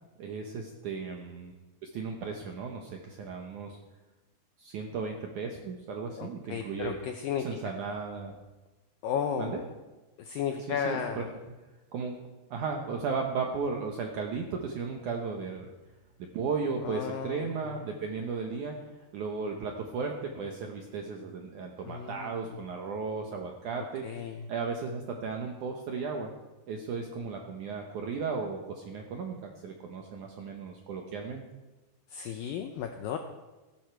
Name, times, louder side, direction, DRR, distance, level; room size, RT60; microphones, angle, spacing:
voice 1, 0.2-1.5 1.8-3.8 4.6-7.0 7.4-8.4 9.4-9.6 10.7-11.2 11.9-12.2 12.5-15.7 16.3-26.3 26.7-31.4, right 5 dB, 80° right, 2 dB, 1.8 m, -35 dB
voice 2, 6.2-7.6 9.0-9.6 10.2-11.2 16.8-17.5 21.9-22.3 24.0-24.4 32.1-33.2, left 7 dB, 90° left, 6 dB, 2.0 m, -34 dB
16.5 x 12.0 x 4.6 m, 1.2 s
omnidirectional pair, 5.0 m